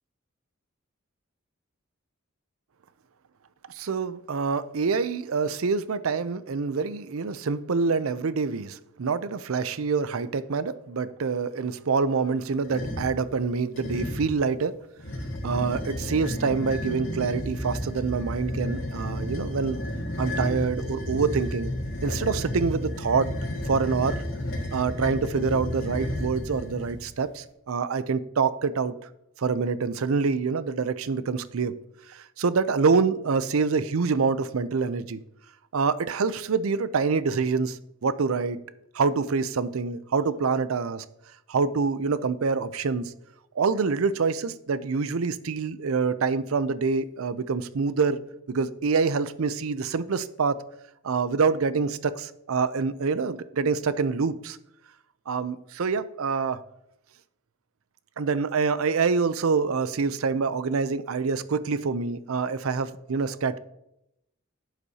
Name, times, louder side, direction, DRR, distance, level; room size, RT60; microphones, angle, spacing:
voice 1, 3.7-14.7 15.4-19.8 20.2-21.7 22.0-23.3 23.7-24.2 24.7-28.9 29.4-31.8 32.1-35.2 35.7-38.6 38.9-41.0 41.5-43.1 43.6-48.2 48.5-50.6 51.0-54.6 55.3-56.6 58.2-63.6, right 5 dB, 80° right, 15 dB, 0.5 m, -26 dB
sound 1, 12.6-13.2 13.8-14.4 15.0-27.0, left 1 dB, 65° left, 2.0 m, -32 dB
11.0 x 8.2 x 2.8 m, 0.83 s
head